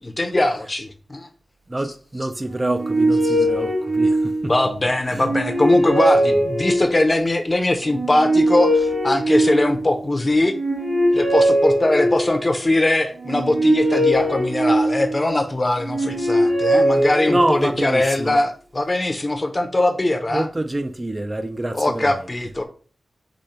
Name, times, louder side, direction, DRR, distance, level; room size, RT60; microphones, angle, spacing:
voice 1, 0.0-1.3 3.3-3.4 4.4-10.5 11.1-20.5 21.7-22.6, left 2 dB, 30° left, 0.7 m, -21 dB
voice 2, 1.7-4.5 5.1-5.3 17.3-18.4 20.3-22.1, right 1 dB, 25° right, 0.4 m, -26 dB
sound 1, 2.5-4.7 5.1-7.2 7.9-10.0 10.5-12.5 13.2-15.3 15.8-17.8, right 1 dB, 80° right, 1.1 m, -20 dB
5.0 x 2.2 x 4.2 m
wide cardioid pair, 100°, 0 cm